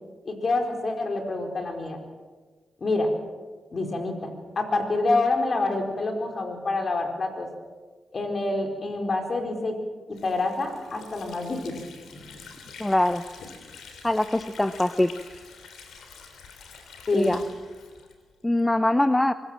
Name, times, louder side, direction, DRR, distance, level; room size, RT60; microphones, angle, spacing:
voice 1, 0.2-2.0 2.8-3.1 3.7-4.3 4.6-7.5 8.1-9.7 10.2-11.8 17.1-17.4, left 2 dB, 50° left, 4 dB, 4.7 m, -27 dB
Water / Sink (filling or washing), 10.1-18.7, left 5 dB, 85° left, 3.3 m, -46 dB
voice 2, 12.8-13.2 14.0-15.1 17.1-17.4 18.4-19.3, left 1 dB, 15° left, 12 dB, 0.8 m, -22 dB
24.5 x 16.0 x 7.7 m, 1.4 s
cardioid pair, 60°, 0 cm